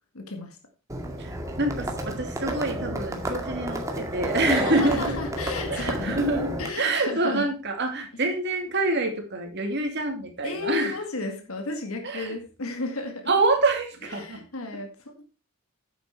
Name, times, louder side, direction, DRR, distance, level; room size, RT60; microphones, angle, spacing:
voice 1, 0.1-0.6 4.5-6.2 6.6-7.5 10.4-13.3 14.1-15.2, left 3 dB, 90° left, 2.0 m, -33 dB
Livestock farm animals working animals, 0.9-6.7, right 1 dB, 15° right, 2.0 m, -31 dB
voice 2, 1.2-5.2 5.7-11.0 12.0-12.4 13.3-14.4 14.7-14.8, right 2 dB, 55° right, 2.7 m, -26 dB
10.0 x 8.0 x 4.5 m
head